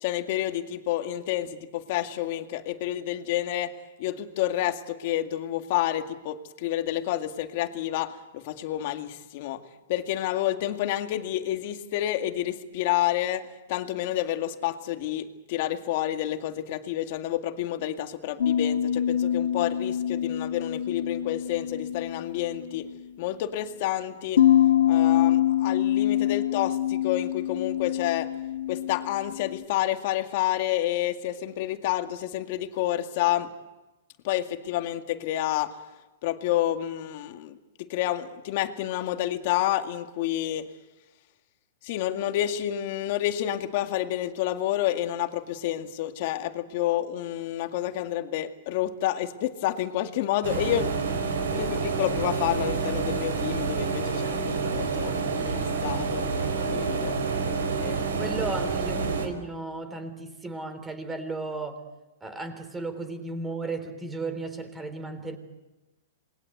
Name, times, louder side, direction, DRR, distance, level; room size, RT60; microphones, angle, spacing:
voice 1, 0.0-3.7 4.0-9.6 9.9-22.9 23.2-24.4 24.9-28.3 28.7-33.5 34.2-35.8 36.2-40.7 41.8-50.9 51.5-55.1 55.4-57.2 57.8-58.0, left 13 dB, 50° left, 2.1 m, -29 dB
sound 1, 18.4-23.0 24.4-29.6, left 11 dB, 80° left, 1.6 m, -25 dB
sound 2, 50.4-59.3, right 4 dB, 85° right, 5.3 m, -28 dB
voice 2, 57.8-61.8 62.2-65.4, right 3 dB, 10° right, 3.5 m, -35 dB
27.5 x 21.5 x 8.1 m
hypercardioid pair, 145°, 0 cm